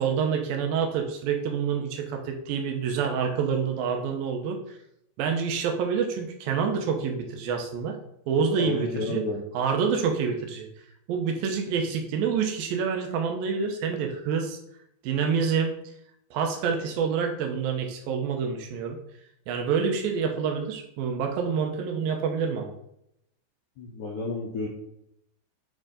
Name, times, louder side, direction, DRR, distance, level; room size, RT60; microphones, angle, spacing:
voice 1, 0.0-4.6 5.2-8.0 8.3-9.2 9.5-10.7 11.1-14.6 15.0-15.7 16.3-19.0 19.5-22.7, right 6 dB, 75° right, 3 dB, 2.2 m, -27 dB
voice 2, 8.6-9.4 23.8-24.7, left 3 dB, 85° left, -3 dB, 1.7 m, -31 dB
8.8 x 3.9 x 3.8 m, 0.76 s
omnidirectional pair, 5.1 m